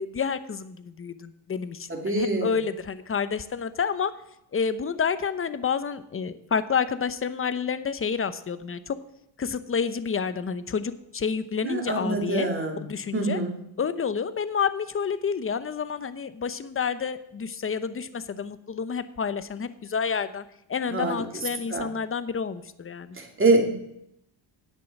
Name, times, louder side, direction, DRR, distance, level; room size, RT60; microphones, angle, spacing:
voice 1, 0.0-4.1 4.5-9.0 9.4-12.5 12.8-13.4 13.8-23.2, left 6 dB, 25° left, 13 dB, 0.8 m, -29 dB
voice 2, 1.9-2.6 11.6-12.8 13.1-13.5 20.9-21.2 21.7-21.9 23.1-23.7, right 2 dB, 25° right, 2 dB, 2.8 m, -25 dB
11.0 x 8.3 x 6.0 m, 0.78 s
cardioid pair, 95°, 48 cm